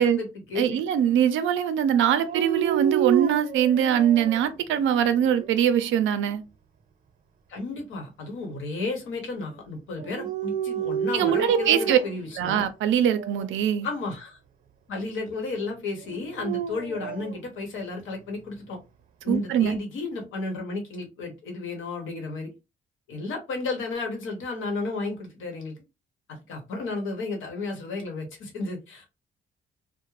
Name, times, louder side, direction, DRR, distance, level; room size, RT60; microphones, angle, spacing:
voice 1, 0.0-0.8 7.5-12.6 13.8-14.4 14.9-18.8 19.2-22.5 23.1-25.8 26.3-29.1, left 3 dB, 80° left, 1.0 m, -33 dB
voice 2, 0.6-6.4 11.1-12.0 12.4-13.9 19.3-19.8, right 9 dB, 80° right, 0.4 m, -22 dB
Dog, 2.2-4.5 5.1-5.8 10.0-12.3 13.1-13.5 16.1-17.4, right 10 dB, 45° right, 0.7 m, -30 dB
2.4 x 2.1 x 3.1 m
cardioid pair, 90°, 20 cm